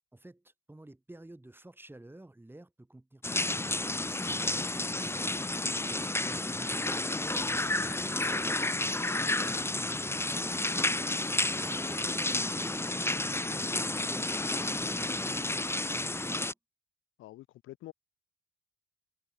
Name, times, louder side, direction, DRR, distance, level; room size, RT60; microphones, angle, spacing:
voice 1, 0.1-5.3 5.6-10.1 11.4-16.6, right 1 dB, 10° right, 6.8 m, -50 dB
sound 1, 3.2-16.5, left 2 dB, 10° left, 1.9 m, -31 dB
voice 2, 5.8-6.1 12.1-12.2 17.2-17.9, left 15 dB, 90° left, 5.6 m, -48 dB
cardioid pair, 90°, 20 cm